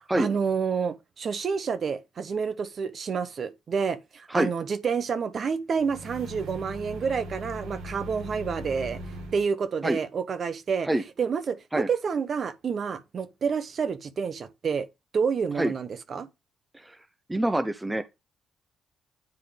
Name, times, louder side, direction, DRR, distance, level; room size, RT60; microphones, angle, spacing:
voice 1, 0.0-9.0 9.3-10.9 11.2-11.6 11.9-14.9 15.1-16.3, right 6 dB, 50° right, 1.1 m, -29 dB
sound 1, 5.8-9.4, equal, 85° right, 3.2 m, -39 dB
voice 2, 17.3-18.0, right 1 dB, 10° right, 0.7 m, -25 dB
9.4 x 3.8 x 3.4 m
cardioid pair, 90°, 0 cm